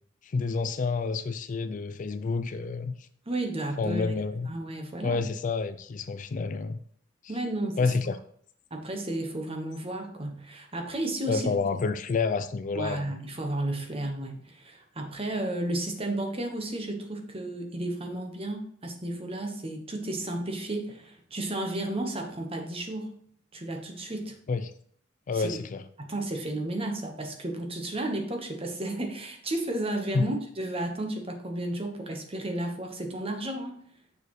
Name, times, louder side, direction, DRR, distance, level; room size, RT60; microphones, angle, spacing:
voice 1, 0.2-3.1 3.8-4.5 5.0-6.8 7.8-8.2 11.3-13.1 24.5-24.7 25.3-25.8 30.1-30.2, left 4 dB, 40° left, 0.4 m, -29 dB
voice 2, 3.2-4.1 4.5-5.2 7.3-7.9 8.7-11.5 12.7-23.1 23.5-24.4 25.3-25.5 26.0-33.8, right 1 dB, 30° right, 1.2 m, -33 dB
6.7 x 6.7 x 3.1 m
head